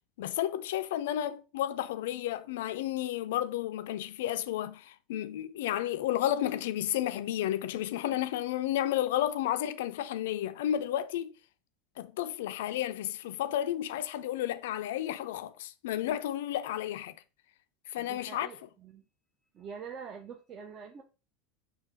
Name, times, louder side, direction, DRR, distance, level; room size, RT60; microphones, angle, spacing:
voice 1, 0.2-11.4 12.0-17.2 17.9-18.5, left 12 dB, 60° left, 0.3 m, -32 dB
voice 2, 18.0-19.0 19.5-21.0, right 6 dB, 35° right, 0.4 m, -45 dB
4.0 x 2.5 x 3.9 m
figure-of-eight pair, 75°, 0 cm